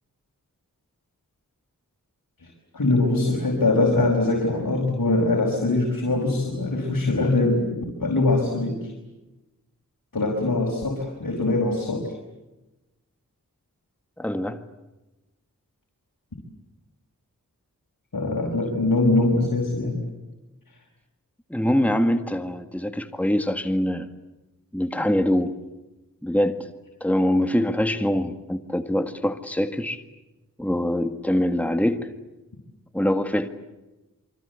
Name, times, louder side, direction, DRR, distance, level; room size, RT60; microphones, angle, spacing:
voice 1, 2.7-8.9 10.1-12.1 18.1-20.0, left 2 dB, 70° left, 5.2 m, -22 dB
voice 2, 14.2-14.6 21.5-24.1 24.7-25.6 26.2-26.7 27.0-30.0 30.6-32.1 32.9-33.5, left 1 dB, 5° left, 1.8 m, -24 dB
27.5 x 24.5 x 8.2 m
wide cardioid pair, 45°, 35 cm